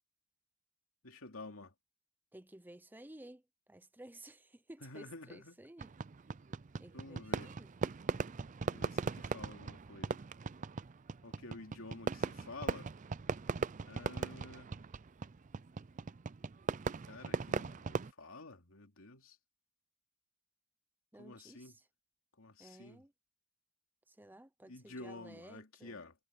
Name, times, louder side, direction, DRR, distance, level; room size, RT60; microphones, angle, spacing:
voice 1, 1.0-1.7 4.8-5.6 6.9-7.5 8.6-10.2 11.2-12.9 13.9-14.7 17.1-19.4 21.2-21.7 22.4-23.0 24.6-26.1, left 2 dB, 85° left, 2.8 m, -50 dB
voice 2, 2.3-3.4 3.7-5.9 6.8-7.7 21.1-21.9 22.6-23.1 24.1-26.0, right 1 dB, 10° right, 0.7 m, -55 dB
Fireworks, 5.8-18.1, right 4 dB, 35° right, 0.4 m, -39 dB
head